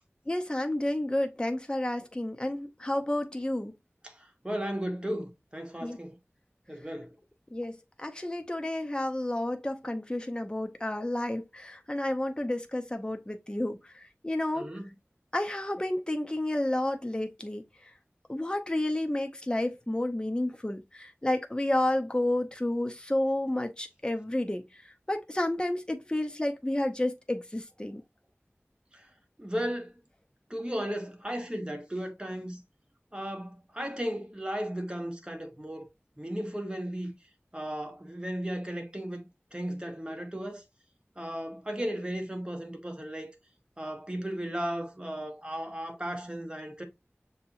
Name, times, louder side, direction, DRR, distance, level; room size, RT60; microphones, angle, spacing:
voice 1, 0.3-3.7 5.8-6.0 7.5-14.7 15.3-17.6 18.3-24.8 25.1-28.0, left 1 dB, 20° left, 0.7 m, -31 dB
voice 2, 4.4-6.1 6.7-7.1 14.5-14.9 28.9-29.0 29.4-30.0 30.5-32.6 33.1-35.9 36.2-37.1 37.5-39.2 39.5-40.6 41.2-43.3 43.8-46.8, equal, 20° right, 1.2 m, -35 dB
6.6 x 2.9 x 2.7 m
wide cardioid pair, 40°, 5 cm